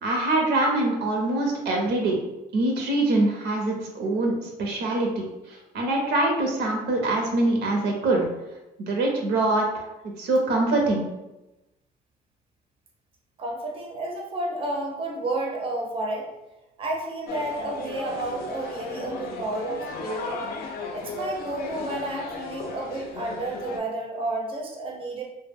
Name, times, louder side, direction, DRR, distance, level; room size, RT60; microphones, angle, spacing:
voice 1, 0.0-2.2 2.5-8.2 8.8-9.9 10.2-11.0, right 2 dB, 80° right, 0 dB, 0.7 m, -24 dB
voice 2, 13.4-16.3 16.8-20.5 20.9-25.2, right 2 dB, 30° right, 0 dB, 0.5 m, -31 dB
sound 1, 17.3-23.8, left 3 dB, 65° left, 0.4 m, -35 dB
2.1 x 2.1 x 3.4 m, 0.97 s
cardioid pair, 110°, 17 cm